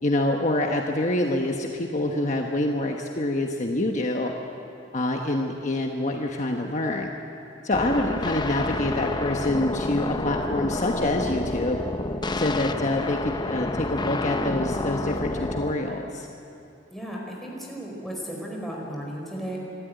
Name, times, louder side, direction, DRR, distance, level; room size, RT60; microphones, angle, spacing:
voice 1, 0.0-4.3 4.9-7.1 7.6-11.8 12.3-16.3, left 1 dB, 40° left, 2 dB, 1.2 m, -26 dB
sound 1, 7.7-15.7, left 2 dB, 25° left, 0.7 m, -29 dB
voice 2, 16.9-19.6, equal, ahead, -2 dB, 4.8 m, -35 dB
26.5 x 13.0 x 9.3 m, 2.8 s
head